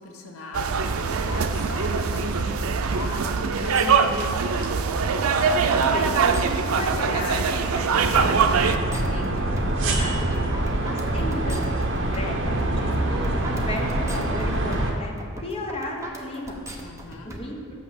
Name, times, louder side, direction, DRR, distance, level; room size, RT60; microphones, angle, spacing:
voice 1, 0.0-5.1 10.5-10.9 16.7-17.4, left 3 dB, 80° left, 3 dB, 0.8 m, -39 dB
sound 1, 0.5-8.8, right 5 dB, 90° right, 0.5 m, -23 dB
sound 2, 3.1-17.4, right 1 dB, 15° right, 0.8 m, -40 dB
voice 2, 6.5-10.4 10.9-15.1 15.4-16.6 17.2-17.6, left 1 dB, 30° left, 0 dB, 1.0 m, -35 dB
sound 3, 8.0-14.9, right 1 dB, 65° right, 1.0 m, -25 dB
6.3 x 5.6 x 7.2 m, 2.2 s
head